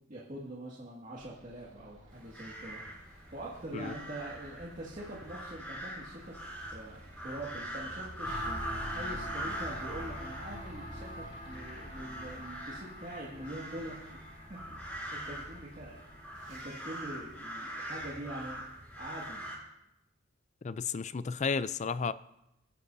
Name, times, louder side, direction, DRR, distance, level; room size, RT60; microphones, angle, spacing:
voice 1, 0.1-2.8 3.1-6.4 6.7-14.2 14.5-16.0 16.5-18.6 19.0-19.4, right 1 dB, 40° right, -6 dB, 2.1 m, -44 dB
sound 1, 1.2-19.3, equal, 70° right, 2.3 m, -58 dB
sound 2, 2.1-19.6, equal, 5° left, 5.5 m, -43 dB
sound 3, 8.2-17.8, equal, 55° left, 3.2 m, -45 dB
voice 2, 20.6-22.1, left 5 dB, 35° left, 15 dB, 0.4 m, -32 dB
23.0 x 9.9 x 2.7 m, 0.86 s
head